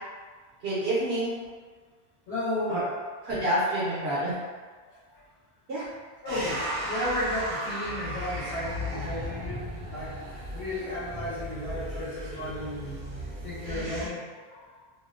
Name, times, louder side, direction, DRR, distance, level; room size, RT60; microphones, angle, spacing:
voice 1, 0.6-1.4 2.7-2.8 3.2-4.3 5.7-5.9, right 1 dB, 75° right, -9 dB, 1.0 m, -27 dB
voice 2, 2.3-2.8 6.2-10.1 10.5-13.0 13.4-14.8, left 1 dB, 80° left, -10 dB, 1.1 m, -34 dB
sound 1, 6.3-14.1, equal, 60° right, 0.7 m, -35 dB
2.7 x 2.0 x 2.4 m, 1.5 s
omnidirectional pair, 1.0 m